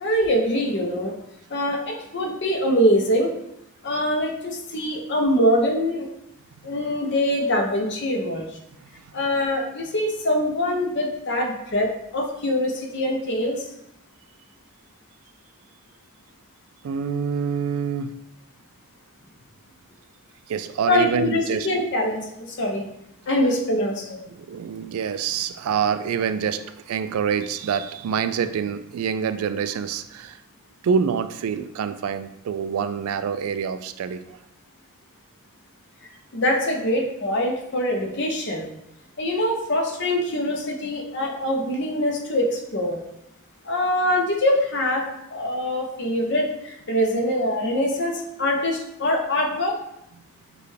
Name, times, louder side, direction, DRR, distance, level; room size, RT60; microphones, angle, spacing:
voice 1, 0.0-1.1 1.5-3.3 3.8-6.1 6.6-8.5 9.1-13.7 20.9-22.9 23.3-24.2 36.3-38.7 39.2-43.0 43.6-45.0 45.3-49.8, left 1 dB, 50° left, 1 dB, 0.8 m, -23 dB
voice 2, 16.8-18.2 20.5-21.7 24.3-30.4 30.8-34.4, right 7 dB, 75° right, 11 dB, 0.3 m, -26 dB
6.8 x 2.3 x 3.2 m, 0.81 s
head